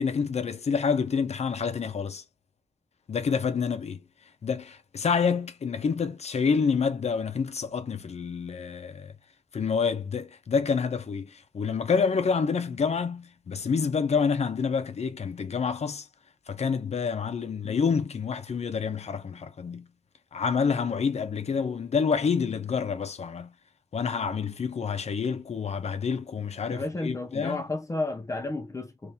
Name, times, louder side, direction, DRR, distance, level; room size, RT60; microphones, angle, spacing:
voice 1, 0.0-2.2 3.1-4.0 4.4-9.1 9.5-16.0 16.5-19.9 20.3-23.5 23.9-27.6, left 5 dB, 70° left, 0.7 m, -28 dB
voice 2, 26.7-29.1, left 2 dB, 25° left, 0.7 m, -32 dB
3.2 x 2.9 x 3.4 m
wide cardioid pair, 90°, 11 cm